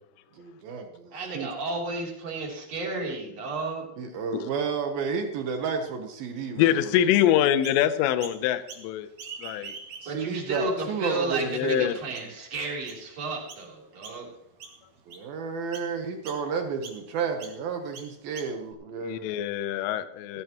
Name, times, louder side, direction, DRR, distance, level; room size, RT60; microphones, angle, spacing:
voice 1, 0.3-1.5 4.0-6.9 10.0-12.3 15.1-19.3, right 5 dB, 80° right, 5 dB, 2.1 m, -32 dB
voice 2, 1.1-3.9 10.1-14.3, right 2 dB, 35° right, -2 dB, 3.9 m, -32 dB
voice 3, 6.6-9.1 9.4-9.8 11.5-11.9 19.0-20.4, left 11 dB, 80° left, 12 dB, 3.3 m, -24 dB
Chirp tweet, 7.1-7.8 8.2-8.9 9.1-10.3 10.9-11.0 11.7-11.8 12.1-12.4 12.9-13.0 13.5-13.7 14.0-14.3 14.6-15.3 15.7-15.9 16.2-16.4 16.8-17.0 17.4-17.6 17.9-18.7, right 5 dB, 50° right, 3.0 m, -43 dB
17.0 x 15.5 x 3.0 m, 0.79 s
omnidirectional pair, 6.0 m